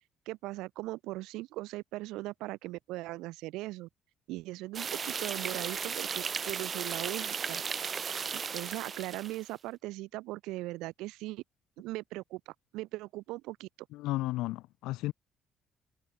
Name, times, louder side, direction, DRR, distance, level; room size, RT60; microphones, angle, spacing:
voice 1, 0.3-3.9 4.3-7.6 8.3-11.4 11.8-13.7, right 19 dB, 85° right, 1.0 m, -39 dB
sound 1, 4.7-9.4, right 6 dB, 45° right, 0.3 m, -35 dB
voice 2, 13.9-15.1, left 18 dB, 85° left, 0.4 m, -33 dB
supercardioid pair, 65°, 0 cm